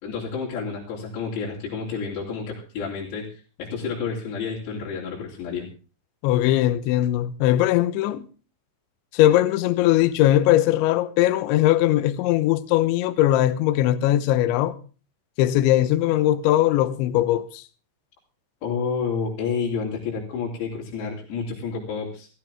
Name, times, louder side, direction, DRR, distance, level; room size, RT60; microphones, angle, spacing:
voice 1, 0.0-3.2 3.6-5.7 18.6-22.3, left 5 dB, 60° left, 5.2 m, -30 dB
voice 2, 6.2-8.3 9.1-14.8 15.4-17.6, left 13 dB, 80° left, 3.0 m, -20 dB
16.5 x 15.0 x 3.5 m
omnidirectional pair, 5.9 m